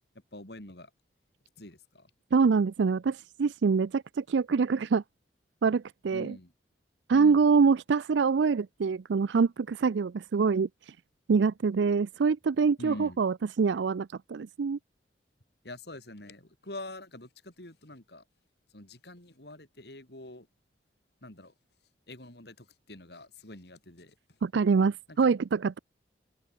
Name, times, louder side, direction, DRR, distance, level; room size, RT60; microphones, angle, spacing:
voice 1, 0.3-0.9 1.6-2.1 6.1-6.5 7.1-7.4 12.8-13.2 15.6-18.2 18.7-20.5 21.2-21.5 22.1-24.1 25.2-25.3, left 1 dB, 60° left, 4.1 m, -45 dB
voice 2, 2.3-5.0 5.6-6.4 7.1-11.0 11.3-14.8 24.4-25.8, right 5 dB, 75° right, 0.4 m, -25 dB
head